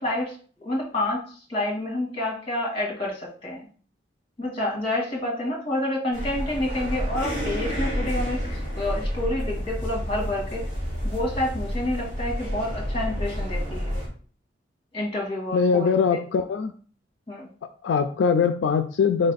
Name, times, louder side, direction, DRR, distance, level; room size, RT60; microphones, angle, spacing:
voice 1, 0.0-3.7 4.4-10.7 11.0-14.0 14.9-16.2 17.3-17.5, left 1 dB, 30° left, -1 dB, 1.7 m, -29 dB
sound 1, 6.1-14.1, equal, 45° right, 2.0 m, -29 dB
voice 2, 15.5-16.7 17.8-19.3, left 6 dB, 75° left, 7 dB, 0.3 m, -22 dB
4.2 x 3.2 x 4.0 m, 0.43 s
head